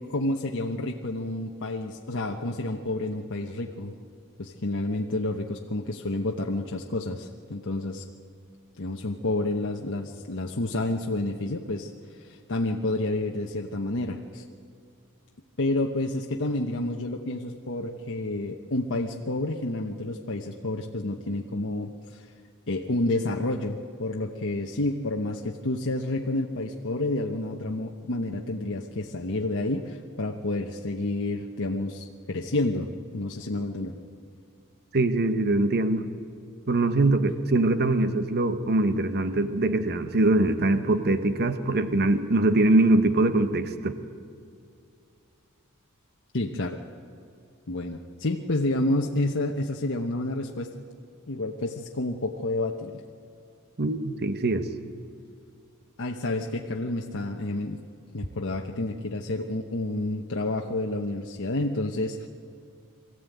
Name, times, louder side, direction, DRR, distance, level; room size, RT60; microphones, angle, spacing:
voice 1, 0.1-3.9 4.4-8.1 8.8-14.4 15.6-22.3 22.7-33.9 46.3-46.7 47.7-50.7 51.3-53.0 56.0-57.8 58.1-62.3, left 2 dB, 55° left, 1 dB, 1.1 m, -29 dB
voice 2, 34.9-36.1 36.7-43.9 53.8-54.6, right 2 dB, 45° right, 10 dB, 1.1 m, -23 dB
23.0 x 15.0 x 9.2 m, 2.4 s
head